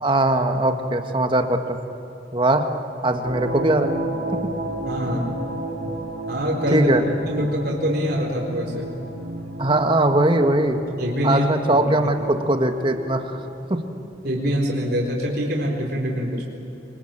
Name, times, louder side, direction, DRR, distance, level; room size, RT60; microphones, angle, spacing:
voice 1, 0.0-1.8 2.3-2.7 3.0-3.9 4.3-4.4 5.6-5.7 6.7-7.0 9.6-10.8 11.2-13.3 13.7-13.8, right 1 dB, 25° right, 6 dB, 1.6 m, -20 dB
sound 1, 3.2-13.5, right 1 dB, 85° right, 4.2 m, -32 dB
voice 2, 4.8-5.4 6.3-6.9 7.3-8.9 11.0-11.9 14.2-16.4, equal, 55° right, -2 dB, 4.2 m, -24 dB
26.0 x 21.0 x 9.0 m, 2.9 s
head